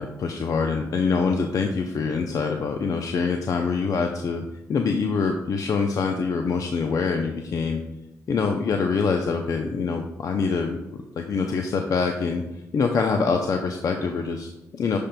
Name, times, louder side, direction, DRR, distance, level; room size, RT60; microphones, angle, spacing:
voice 1, 0.0-4.4 4.7-7.8 8.3-10.8 11.2-12.4 12.7-15.0, left 5 dB, 60° left, 4 dB, 0.6 m, -25 dB
9.8 x 5.2 x 2.3 m, 0.98 s
supercardioid pair, 50°, 7 cm